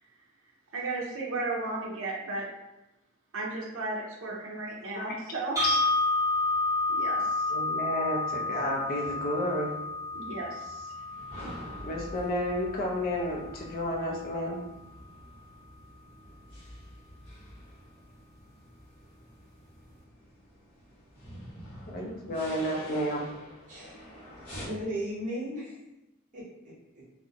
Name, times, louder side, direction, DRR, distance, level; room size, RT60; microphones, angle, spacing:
voice 1, 0.7-2.5 3.3-5.6 6.9-7.5 10.1-10.9, right 2 dB, 70° right, -2 dB, 0.6 m, -34 dB
sound 1, 5.6-13.6, left 2 dB, 15° right, 0.6 m, -30 dB
voice 2, 7.5-9.7 11.8-14.6 21.9-23.2, left 1 dB, 40° left, -2 dB, 0.4 m, -31 dB
sound 2, 11.1-24.7, equal, 5° left, 0.9 m, -47 dB
voice 3, 23.7-24.1 24.7-25.8 26.3-27.0, equal, 35° right, -9 dB, 1.0 m, -36 dB
2.4 x 2.0 x 2.7 m, 0.96 s
head